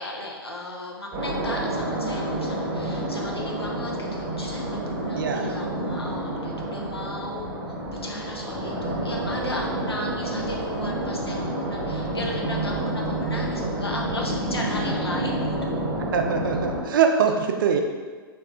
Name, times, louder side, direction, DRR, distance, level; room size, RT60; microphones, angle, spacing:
voice 1, 0.0-7.5 7.9-15.6, left 1 dB, 85° left, -1 dB, 0.7 m, -35 dB
sound 1, 1.1-16.8, right 1 dB, 25° right, 0.9 m, -29 dB
voice 2, 5.1-5.6 16.1-17.8, right 6 dB, 60° right, 4 dB, 0.5 m, -23 dB
3.4 x 2.7 x 3.6 m, 1.5 s
figure-of-eight pair, 110°, 13 cm